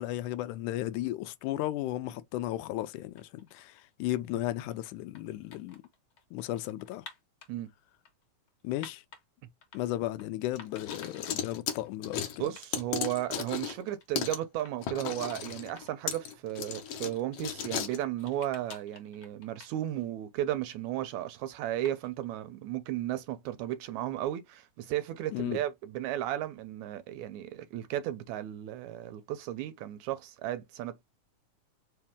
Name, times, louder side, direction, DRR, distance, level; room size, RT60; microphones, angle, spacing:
voice 1, 0.0-5.8 6.3-7.1 8.6-9.0 9.7-12.5 25.3-25.6, left 14 dB, 80° left, 2.0 m, -34 dB
sound 1, 3.0-3.9 4.5-7.5 8.1-9.2 9.6-10.3 10.6-11.9 12.1-12.2 12.5-12.7 12.9-14.2 14.6-14.7 15.1-15.9 16.3-16.4 17.1-20.2 20.5-21.2 21.9-22.3, left 6 dB, 50° left, 1.9 m, -52 dB
sound 2, 10.6-13.8 14.2-14.4 14.8-18.0, left 8 dB, 65° left, 1.7 m, -36 dB
voice 2, 12.4-31.0, right 13 dB, 80° right, 1.7 m, -34 dB
4.9 x 2.7 x 3.5 m
omnidirectional pair, 3.6 m